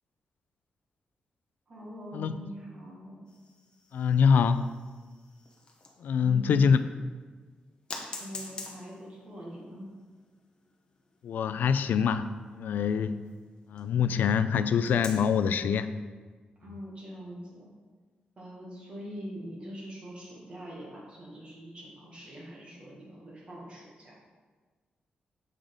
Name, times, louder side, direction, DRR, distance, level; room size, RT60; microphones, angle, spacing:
voice 1, 1.7-3.3 6.2-6.6 8.2-9.9 16.6-17.7 18.4-24.2, equal, 35° right, -5 dB, 1.8 m, -43 dB
sound 1, 3.3-6.2 6.7-6.8 7.9-13.9 14.8-15.5, left 3 dB, 30° left, 0.9 m, -47 dB
voice 2, 3.9-4.6 6.0-6.8 11.2-12.3 12.5-13.1 13.7-15.9, left 6 dB, 80° left, 11 dB, 0.3 m, -24 dB
7.5 x 5.0 x 3.9 m, 1.5 s
wide cardioid pair, 165°, 3 cm